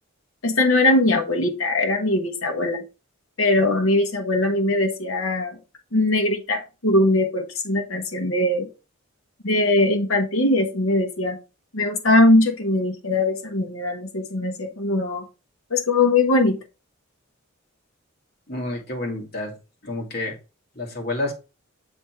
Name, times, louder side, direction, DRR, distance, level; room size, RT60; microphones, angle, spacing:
voice 1, 0.4-2.8 3.4-5.6 5.9-8.7 9.4-11.4 11.7-15.2 15.7-16.6, left 2 dB, 75° left, 2 dB, 1.2 m, -21 dB
voice 2, 18.5-19.5 19.8-20.3 20.8-21.3, left 2 dB, 50° left, 0 dB, 2.2 m, -29 dB
7.2 x 3.5 x 4.5 m, 0.30 s
head